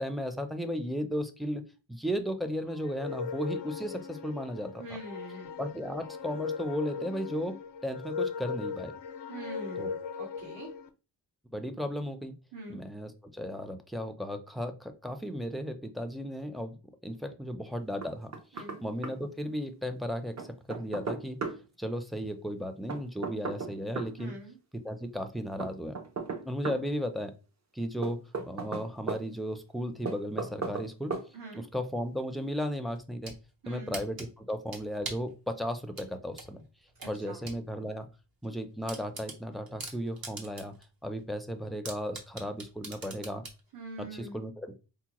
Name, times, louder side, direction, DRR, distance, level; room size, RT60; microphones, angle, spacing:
voice 1, 0.0-4.8 5.6-7.6 7.8-8.9 9.8-9.9 11.5-12.3 12.7-16.8 17.0-21.4 21.8-24.4 24.7-26.0 26.4-27.3 27.7-31.2 31.5-33.3 33.7-36.6 37.1-38.1 38.4-40.7 41.0-43.4 44.0-44.7, equal, ahead, 6 dB, 0.4 m, -35 dB
sound 1, 2.7-10.9, left 6 dB, 85° left, 0.5 m, -38 dB
voice 2, 4.8-5.5 9.3-10.7 12.5-12.8 18.5-18.8 24.2-24.6 31.3-31.6 33.6-34.0 37.0-37.4 43.7-44.4, right 2 dB, 75° right, -8 dB, 1.7 m, -44 dB
Knock, 18.0-18.8 19.0-19.1 20.4-21.6 22.9-24.1 25.6-26.8 28.0-29.2 30.1-30.9 31.1-31.3, right 4 dB, 40° right, 0.6 m, -35 dB
sound 2, 32.9-33.4 33.9-35.3 35.9-37.6 38.0-38.1 38.4-38.5 38.9-40.8 41.2-41.3 41.8-43.6, right 3 dB, 60° right, 1.0 m, -42 dB
4.7 x 2.1 x 2.9 m, 0.32 s
wide cardioid pair, 110°, 41 cm